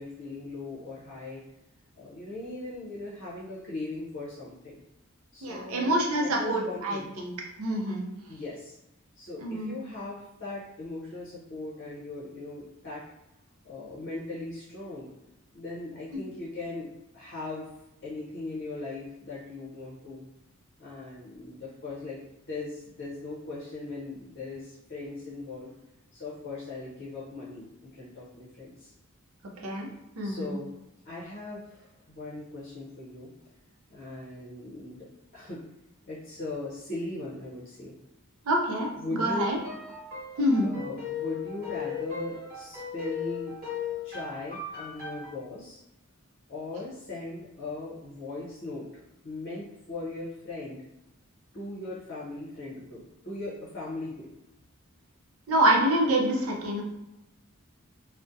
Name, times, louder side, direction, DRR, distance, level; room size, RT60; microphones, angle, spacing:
voice 1, 0.0-1.4 2.0-4.8 5.3-7.1 8.3-8.7 9.2-13.0 13.6-15.1 15.5-17.7 18.0-20.3 20.8-22.2 22.4-25.7 26.1-28.9 30.2-30.7 31.0-33.3 33.9-35.1 35.3-35.7 36.0-38.0 39.0-39.5 40.6-43.6 44.0-45.8 46.5-50.8 51.5-54.3, left 2 dB, 45° left, -7 dB, 0.6 m, -39 dB
voice 2, 5.4-7.3 7.6-8.1 9.4-9.8 16.1-16.2 29.6-29.9 30.2-30.6 38.5-38.9 39.2-39.6 40.4-40.7 55.5-56.8, right 1 dB, 85° right, 0 dB, 0.5 m, -26 dB
sound 1, 39.5-45.3, left 6 dB, 45° right, 1.0 m, -37 dB
2.4 x 2.1 x 2.6 m, 0.93 s
head